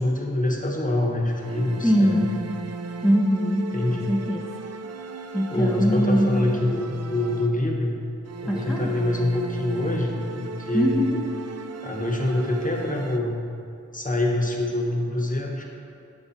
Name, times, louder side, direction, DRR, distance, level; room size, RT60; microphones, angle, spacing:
voice 1, 0.0-2.3 3.7-4.1 5.5-8.0 8.4-11.1 11.8-13.4 13.9-15.6, left 1 dB, 25° left, -1 dB, 1.0 m, -25 dB
sound 1, 1.4-7.8 8.3-13.2, right 3 dB, 55° right, 0.5 m, -37 dB
voice 2, 1.8-2.3 3.0-4.5 5.3-6.4 8.4-9.0 10.7-11.2, equal, ahead, -3 dB, 0.6 m, -22 dB
8.5 x 4.9 x 4.1 m, 2.6 s
wide cardioid pair, 70°, 31 cm